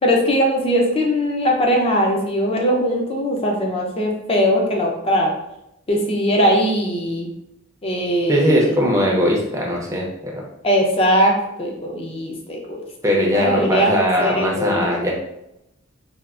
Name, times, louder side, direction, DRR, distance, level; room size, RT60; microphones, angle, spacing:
voice 1, 0.0-5.3 5.9-7.3 7.8-8.8 10.6-12.8 13.2-14.8, equal, 25° left, 0 dB, 0.6 m, -20 dB
voice 2, 8.3-10.4 13.0-15.1, equal, 15° right, -2 dB, 0.6 m, -19 dB
3.5 x 2.4 x 2.4 m, 0.85 s
head